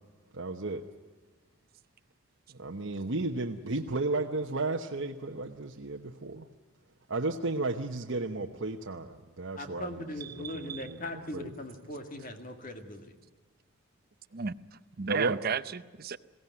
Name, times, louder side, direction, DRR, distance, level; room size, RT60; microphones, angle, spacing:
voice 1, 0.3-0.9 2.6-6.4 7.1-10.1 10.4-11.0 11.3-11.5 15.1-15.4, right 2 dB, 60° right, 2 dB, 1.0 m, -33 dB
voice 2, 9.5-13.1, left 1 dB, 40° left, 6 dB, 2.2 m, -40 dB
voice 3, 10.4-10.8 14.3-14.5 15.0-16.2, right 6 dB, 45° right, 12 dB, 0.6 m, -33 dB
22.0 x 16.5 x 9.6 m, 1.3 s
head